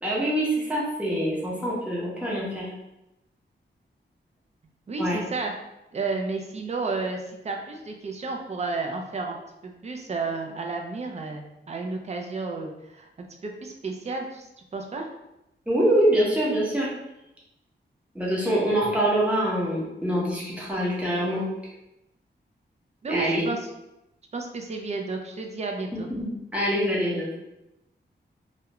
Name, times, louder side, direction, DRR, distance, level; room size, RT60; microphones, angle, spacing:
voice 1, 0.0-2.7 5.0-5.2 15.7-16.9 18.1-21.4 23.1-23.4 26.1-27.3, right 1 dB, 5° right, -6 dB, 0.8 m, -25 dB
voice 2, 4.9-5.5 5.9-9.4 9.6-13.1 13.4-15.1 23.0-23.6 24.3-26.1, right 3 dB, 35° right, 2 dB, 0.4 m, -32 dB
2.3 x 2.1 x 2.8 m, 0.91 s
wide cardioid pair, 110°, 19 cm